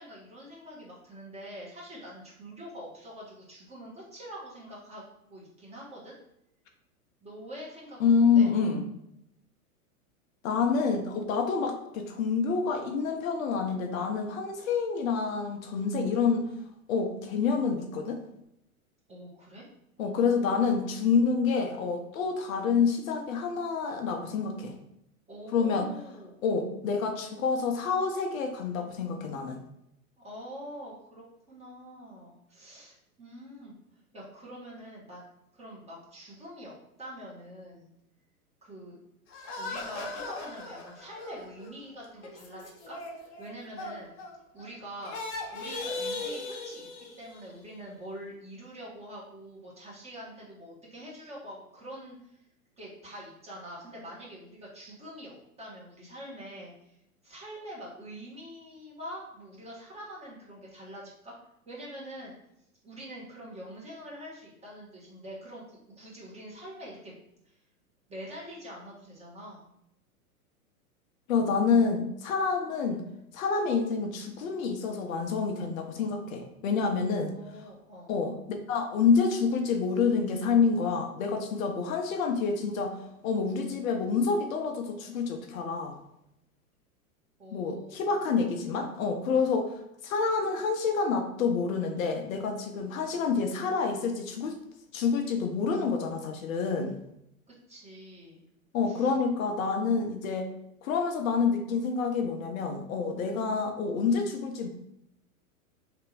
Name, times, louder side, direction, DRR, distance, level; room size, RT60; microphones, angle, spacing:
voice 1, 0.0-6.2 7.2-8.5 19.1-19.7 20.0-20.7 25.3-26.3 30.2-33.8 34.1-35.2 35.5-37.9 38.6-39.0 39.3-44.1 44.5-45.2 45.5-52.4 52.8-56.9 57.2-61.3 61.6-62.3 62.8-67.2 67.4-67.5 68.1-69.7 77.3-78.1 87.4-88.2 97.7-98.4 98.8-99.1, equal, 15° right, -5 dB, 1.5 m, -45 dB
voice 2, 8.0-8.8 10.4-16.5 16.9-18.2 20.0-24.7 25.5-25.9 26.4-29.6 71.3-73.0 73.3-77.3 78.1-78.3 78.7-86.0 87.5-89.7 90.0-94.6 94.9-97.0 98.7-100.5 100.8-104.7, left 5 dB, 65° left, 3 dB, 0.8 m, -28 dB
sound 1, 39.3-44.7 45.0-47.5, left 3 dB, 30° left, 0.9 m, -38 dB
3.4 x 2.9 x 4.7 m, 0.79 s
hypercardioid pair, 115°, 44 cm